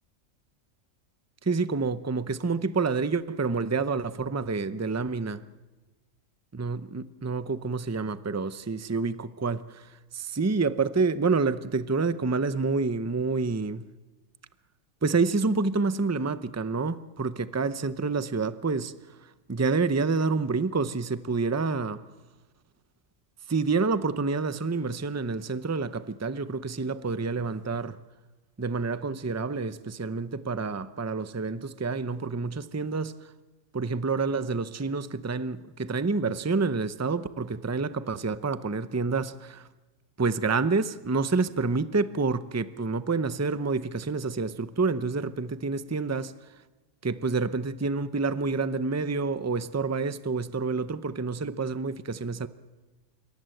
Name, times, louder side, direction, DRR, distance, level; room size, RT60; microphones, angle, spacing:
voice 1, 1.4-5.4 6.5-13.8 15.0-22.0 23.5-28.0 28.6-33.3 33.7-39.7 40.2-46.3 47.0-52.5, right 4 dB, 15° right, 0.6 m, -28 dB
27.0 x 22.5 x 7.8 m
omnidirectional pair, 1.3 m